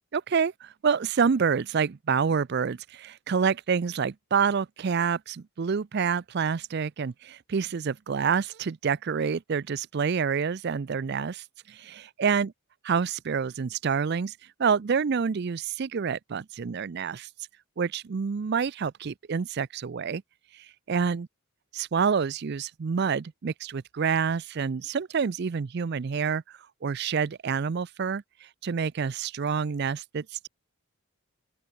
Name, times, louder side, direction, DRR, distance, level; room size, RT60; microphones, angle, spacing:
voice 1, 0.1-12.5 12.8-17.3 17.8-20.2 20.5-21.3 21.7-30.5, right 6 dB, 50° right, 0.4 m, -28 dB
open air
head